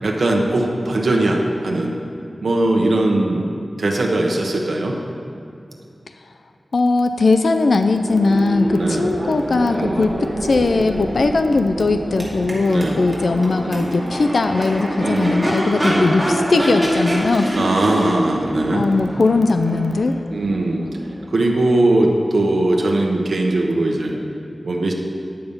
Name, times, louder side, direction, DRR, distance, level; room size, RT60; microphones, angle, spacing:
voice 1, 0.0-1.9 2.4-3.5 3.8-5.0 8.7-9.1 9.8-10.0 12.7-13.0 13.6-13.9 15.0-15.4 15.8-16.0 17.5-18.9 20.3-20.8 21.3-24.2 24.6-24.9, right 2 dB, 75° right, 0 dB, 1.0 m, -20 dB
voice 2, 6.7-17.6 18.7-20.2, left 3 dB, 75° left, 7 dB, 0.4 m, -19 dB
Crowd / Race car auto racing / Accelerating revving vroom, 7.9-21.7, equal, 10° right, 2.5 m, -26 dB
10.0 x 7.0 x 5.3 m, 2.7 s
wide cardioid pair, 85°, 0 cm